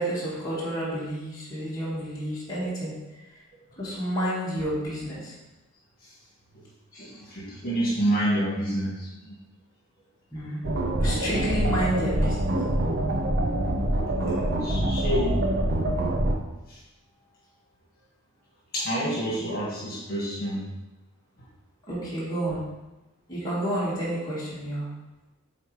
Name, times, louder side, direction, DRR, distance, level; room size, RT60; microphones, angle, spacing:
voice 1, 0.0-2.9 3.8-5.4 6.9-7.1 10.3-10.6 11.0-12.5 21.9-22.7 23.3-24.9, right 1 dB, 15° left, -10 dB, 1.9 m, -30 dB
voice 2, 7.0-9.4 14.2-15.3 16.7-16.8 18.7-20.7, right 1 dB, 45° left, -6 dB, 1.9 m, -28 dB
sound 1, 10.6-16.3, right 1 dB, 45° right, 0.7 m, -25 dB
7.9 x 4.2 x 3.3 m, 1.0 s
head